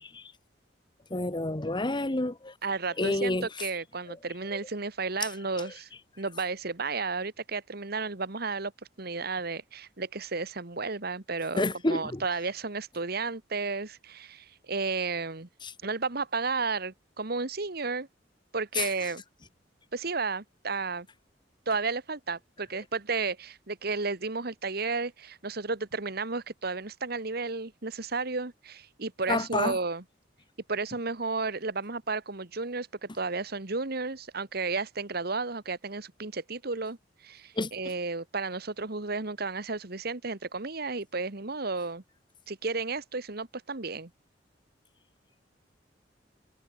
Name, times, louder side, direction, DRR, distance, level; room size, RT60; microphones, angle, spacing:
voice 1, 0.0-0.3 1.1-2.5 3.0-3.5 4.1-4.2 4.5-4.6 5.6-5.7 11.5-12.2 15.6-15.7 18.7-18.9 29.3-29.8 37.6-37.7, left 2 dB, 25° left, 1.2 m, -29 dB
voice 2, 2.6-5.9 6.2-8.7 9.0-15.5 15.8-18.1 18.5-19.2 19.9-21.1 21.6-30.0 30.7-37.0 37.2-42.0 42.5-44.1, right 4 dB, 60° right, 1.7 m, -33 dB
head